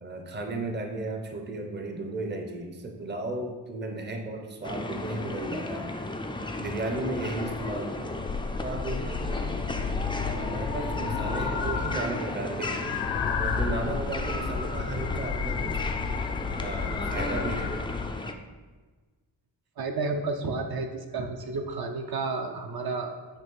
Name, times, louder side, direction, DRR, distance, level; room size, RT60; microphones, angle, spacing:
voice 1, 0.0-5.9 6.6-8.1 8.6-9.6 10.2-12.8 13.4-15.8 16.6-17.8, right 2 dB, 25° right, 3 dB, 0.6 m, -35 dB
sound 1, 4.6-18.3, left 2 dB, 15° left, 0.3 m, -35 dB
sound 2, 8.1-12.2 12.4-18.1, left 5 dB, 65° left, 0.7 m, -32 dB
voice 2, 19.8-23.2, right 3 dB, 60° right, 4 dB, 0.7 m, -31 dB
8.1 x 3.1 x 5.3 m, 1.3 s
wide cardioid pair, 165°, 42 cm